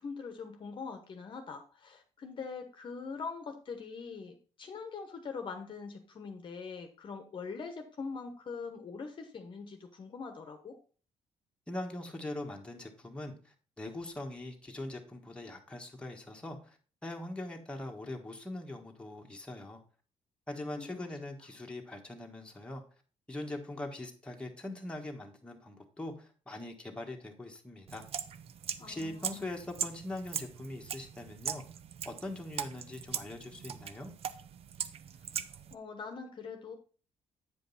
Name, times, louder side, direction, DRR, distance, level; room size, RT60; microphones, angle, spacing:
voice 1, 0.0-10.8 20.8-21.1 28.8-29.5 35.7-36.7, left 5 dB, 40° left, 6 dB, 1.0 m, -43 dB
voice 2, 11.7-19.8 20.5-22.8 23.3-28.0 28.8-31.6 32.0-34.1, left 1 dB, 10° left, 1 dB, 1.4 m, -42 dB
sound 1, 27.9-35.7, right 8 dB, 55° right, 0.5 m, -40 dB
8.5 x 5.2 x 4.0 m, 0.38 s
cardioid pair, 110°, 12 cm